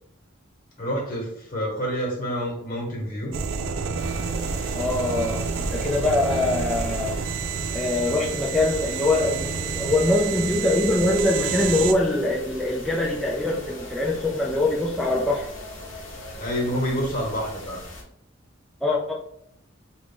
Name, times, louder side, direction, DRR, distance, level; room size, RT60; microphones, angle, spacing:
voice 1, 0.8-3.4 16.4-17.8, equal, 45° left, -1 dB, 1.2 m, -28 dB
sound 1, 3.3-11.9, right 5 dB, 80° right, 0.3 m, -29 dB
sound 2, 3.6-17.4, left 1 dB, 20° left, 1.0 m, -45 dB
sound 3, 4.0-18.0, left 1 dB, 65° left, 0.9 m, -42 dB
voice 2, 4.7-7.2 7.7-15.5 18.8-19.1, left 2 dB, ahead, -5 dB, 0.3 m, -23 dB
3.1 x 2.4 x 3.7 m, 0.72 s
head